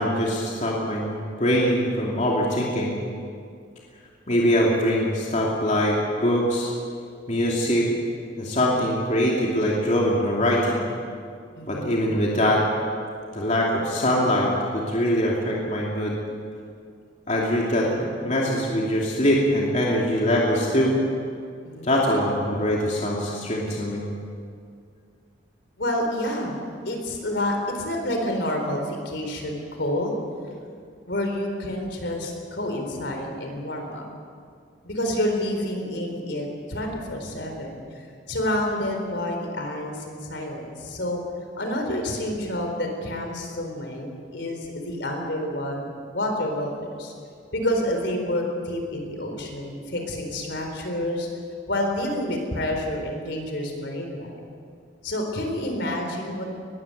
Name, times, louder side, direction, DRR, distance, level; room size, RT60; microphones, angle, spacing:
voice 1, 0.0-2.9 4.3-6.7 7.3-7.9 8.4-10.8 11.7-12.6 13.3-16.2 17.3-21.0 21.8-24.0, equal, 40° left, -3 dB, 2.8 m, -23 dB
voice 2, 11.6-12.0 21.6-21.9 25.8-26.6 26.8-30.2 31.1-34.0 34.8-37.8 38.3-41.2 41.6-45.9 46.1-47.1 47.5-51.3 51.7-54.3 55.0-56.4, left 1 dB, 65° left, 3 dB, 4.2 m, -28 dB
20.5 x 15.5 x 9.2 m, 2.3 s
head